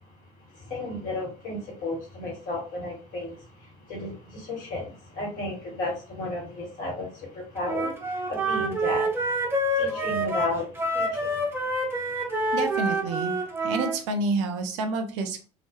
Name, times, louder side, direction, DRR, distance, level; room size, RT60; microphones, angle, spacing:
voice 1, 0.5-9.3 9.7-11.4, left 2 dB, 50° left, 1.3 m, -34 dB
Wind instrument woodwind instrument, 7.6-14.0, right 1 dB, 15° right, 0.6 m, -27 dB
voice 2, 12.5-13.4 13.6-15.4, right 3 dB, 60° right, 0.5 m, -28 dB
2.2 x 2.2 x 2.8 m
figure-of-eight pair, 65°, 17 cm